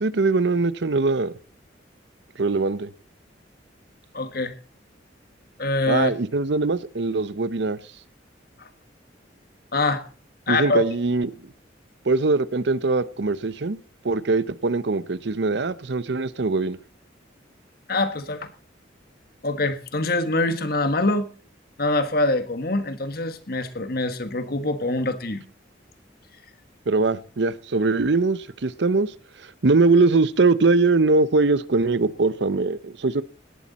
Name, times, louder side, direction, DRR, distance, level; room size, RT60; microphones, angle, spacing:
voice 1, 0.0-1.3 2.4-2.9 5.8-7.8 10.5-11.3 12.1-13.8 14.0-16.8 26.9-29.1 29.6-33.2, right 3 dB, 65° right, 0.7 m, -21 dB
voice 2, 4.1-4.5 5.6-6.1 8.6-8.7 9.7-10.0 10.5-10.8 17.9-18.5 19.4-21.3 21.8-25.4, left 2 dB, 55° left, 1.5 m, -24 dB
17.5 x 11.5 x 4.1 m
head